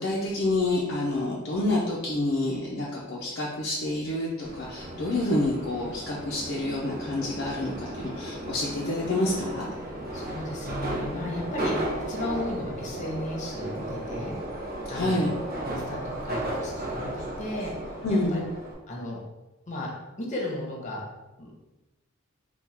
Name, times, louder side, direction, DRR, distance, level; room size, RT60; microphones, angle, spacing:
voice 1, 0.0-9.7 14.9-15.3 18.0-18.4, left 2 dB, 55° left, -5 dB, 0.5 m, -28 dB
Subway metro underground, 4.4-18.7, right 1 dB, 45° right, 0.7 m, -35 dB
voice 2, 10.1-11.8 12.1-14.3 14.9-15.2 15.6-17.7 18.1-18.4 18.9-19.2 19.7-19.9 20.2-21.0 21.4-21.5, left 1 dB, 35° left, -2 dB, 0.9 m, -34 dB
3.6 x 2.3 x 4.3 m, 1.1 s
head